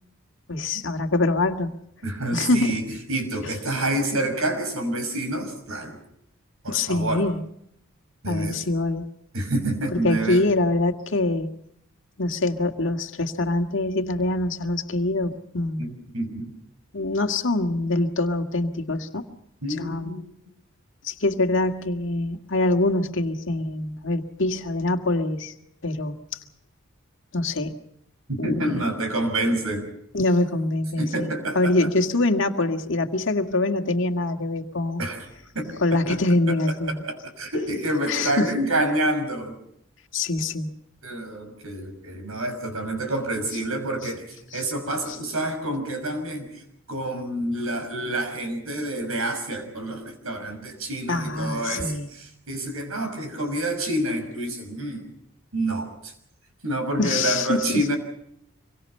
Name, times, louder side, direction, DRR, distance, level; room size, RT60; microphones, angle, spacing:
voice 1, 0.5-1.7 2.3-2.7 6.7-7.4 8.3-9.1 10.0-11.5 12.2-15.9 16.9-19.3 19.8-20.1 21.0-25.5 25.8-26.2 27.3-27.7 28.4-28.6 30.1-35.0 35.8-37.0 38.1-38.5 40.1-40.7 51.1-52.1 57.0-57.8, left 2 dB, 60° left, 5 dB, 1.8 m, -24 dB
voice 2, 2.0-6.0 6.6-7.2 8.2-8.7 9.3-10.5 15.8-16.5 19.6-20.2 28.3-29.9 31.0-31.8 35.0-35.3 35.5-35.8 36.1-36.2 36.5-39.6 41.0-55.1 55.5-56.1 56.6-58.0, right 1 dB, 90° right, 7 dB, 6.2 m, -28 dB
26.0 x 23.5 x 5.5 m, 0.75 s
head